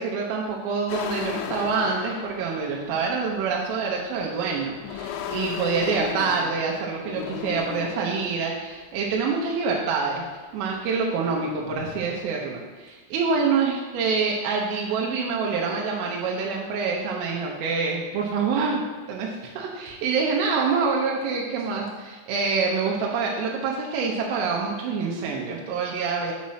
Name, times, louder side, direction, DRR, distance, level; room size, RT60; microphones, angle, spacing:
voice 1, 0.0-10.2 10.5-18.8 19.1-26.3, right 5 dB, 90° right, -2 dB, 3.5 m, -26 dB
sound 1, 0.9-3.5 4.3-8.4 9.2-9.5 9.8-11.1 11.5-12.2, left 8 dB, 85° left, 3.0 m, -36 dB
7.4 x 4.2 x 5.6 m, 1.4 s
omnidirectional pair, 5.7 m